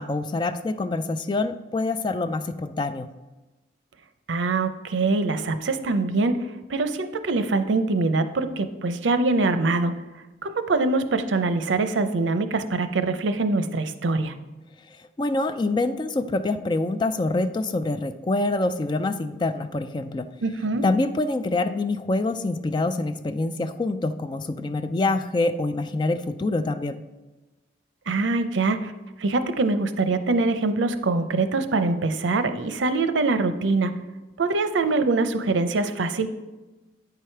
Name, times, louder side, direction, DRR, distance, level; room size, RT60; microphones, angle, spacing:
voice 1, 0.0-3.1 15.2-20.3 20.8-27.0, left 2 dB, 25° left, 11 dB, 0.3 m, -26 dB
voice 2, 4.3-10.0 10.4-14.3 20.4-20.8 28.1-28.9 29.2-33.9 34.4-36.3, right 3 dB, 90° right, 10 dB, 0.6 m, -24 dB
9.0 x 4.8 x 4.5 m, 1.1 s
head